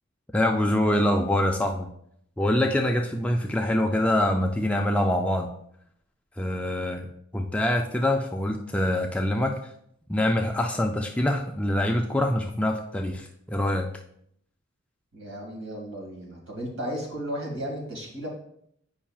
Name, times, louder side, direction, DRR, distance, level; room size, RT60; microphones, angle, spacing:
voice 1, 0.3-1.9 2.4-5.5 6.4-7.1 7.3-9.5 10.1-13.9, left 1 dB, 5° left, 2 dB, 0.3 m, -25 dB
voice 2, 15.1-18.3, equal, 65° right, -1 dB, 2.0 m, -34 dB
8.5 x 5.5 x 2.3 m, 0.70 s
head